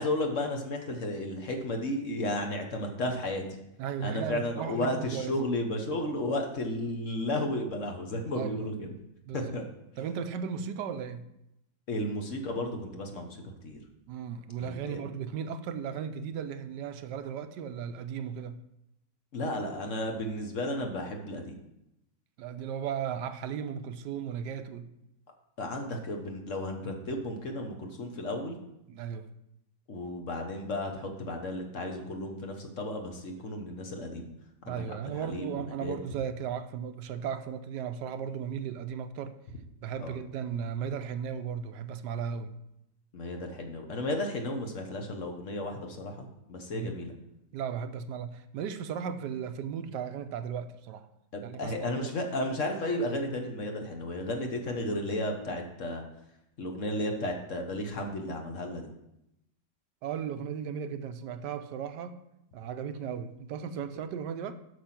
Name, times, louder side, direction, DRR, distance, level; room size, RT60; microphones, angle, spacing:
voice 1, 0.0-3.4 4.0-8.9 9.3-9.7 11.9-13.4 13.6-13.8 14.6-15.0 19.3-21.6 25.6-28.6 29.9-34.3 34.7-36.0 40.0-40.2 43.1-47.1 51.3-56.0 56.6-58.9, left 1 dB, 50° left, 3 dB, 1.3 m, -33 dB
voice 2, 3.8-5.4 8.3-8.7 9.3-9.5 10.0-11.3 14.1-18.6 22.4-24.9 28.9-29.3 34.6-39.3 39.8-42.5 46.7-46.9 47.5-51.1 51.4-52.1 60.0-62.2 62.5-64.5, right 7 dB, 85° right, 10 dB, 1.3 m, -36 dB
8.0 x 6.2 x 5.8 m, 0.85 s
omnidirectional pair, 1.8 m